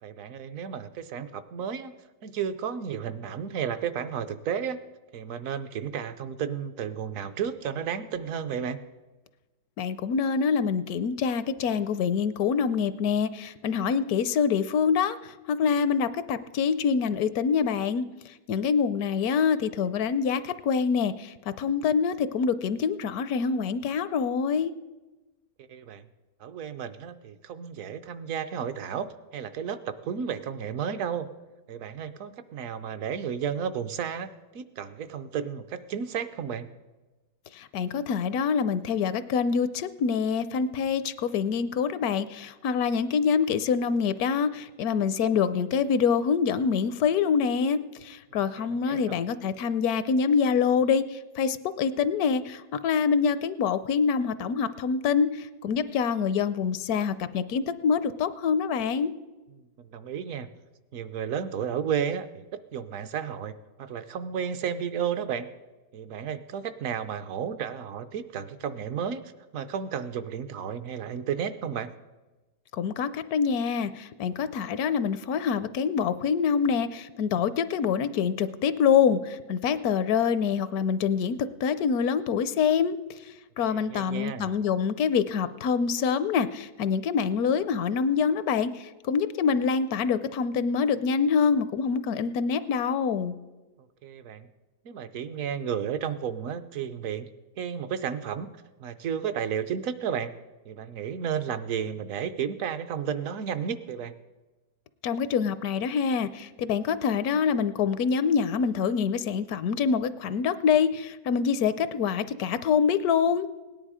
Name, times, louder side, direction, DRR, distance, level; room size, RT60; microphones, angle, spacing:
voice 1, 0.0-1.9 2.2-4.8 5.1-8.8 25.7-26.1 26.4-31.3 31.7-36.7 48.6-49.2 59.6-59.7 59.9-60.5 60.9-62.4 62.7-63.5 63.8-65.5 65.9-69.2 69.5-71.9 83.7-84.5 94.0-94.5 94.8-97.3 97.6-98.5 98.8-100.3 100.7-104.1, right 8 dB, 65° right, 11 dB, 1.0 m, -32 dB
voice 2, 9.8-24.7 37.5-59.1 72.7-83.0 83.2-93.3 105.0-113.5, left 6 dB, 75° left, 14 dB, 1.1 m, -26 dB
17.5 x 10.0 x 4.9 m, 1.2 s
omnidirectional pair, 1.6 m